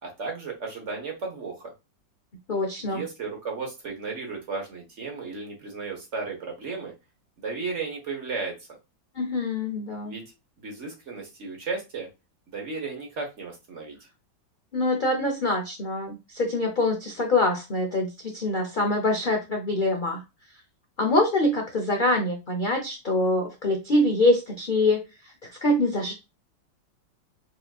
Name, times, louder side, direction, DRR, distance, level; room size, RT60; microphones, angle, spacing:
voice 1, 0.0-1.7 2.8-6.9 7.4-8.7 10.0-10.3 10.6-12.1 12.5-14.0, right 4 dB, 45° right, 1 dB, 1.5 m, -34 dB
voice 2, 2.5-3.0 9.1-10.1 14.7-20.2 21.0-25.3 25.6-26.1, left 2 dB, 45° left, 2 dB, 0.6 m, -24 dB
4.8 x 3.0 x 2.4 m, 0.25 s
omnidirectional pair, 2.0 m